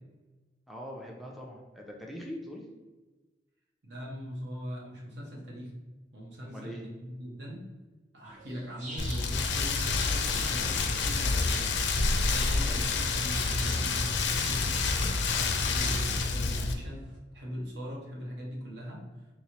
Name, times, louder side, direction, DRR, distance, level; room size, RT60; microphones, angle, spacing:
voice 1, 0.7-2.6 6.4-6.8 12.6-12.9, equal, ahead, -1 dB, 0.3 m, -42 dB
voice 2, 3.8-5.7 6.1-7.7 8.1-11.8 12.3-17.0 17.3-19.0, equal, 65° right, -2 dB, 0.9 m, -40 dB
sound 1, 8.2-17.2, right 1 dB, 40° right, 0.7 m, -46 dB
Rain, 9.0-16.7, left 4 dB, 75° left, 0.4 m, -28 dB
3.4 x 3.0 x 2.8 m, 1.2 s
head